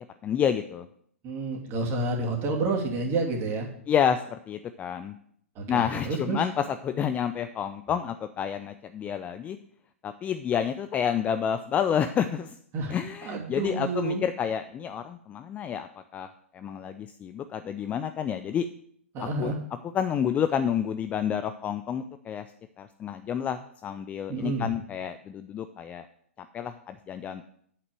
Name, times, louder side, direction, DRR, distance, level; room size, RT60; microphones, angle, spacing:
voice 1, 0.2-0.9 3.9-5.1 5.7-9.6 10.0-12.6 12.9-15.9 16.1-16.3 16.5-18.7 19.2-19.5 19.9-22.5 22.8-26.1 26.4-27.4, left 8 dB, 20° left, 10 dB, 0.4 m, -29 dB
voice 2, 1.2-3.7 5.6-6.4 12.7-13.0 13.2-14.2 19.1-19.6 24.3-24.7, right 3 dB, 30° right, 1 dB, 2.5 m, -29 dB
7.9 x 5.9 x 7.6 m, 0.65 s
figure-of-eight pair, 110°, 8 cm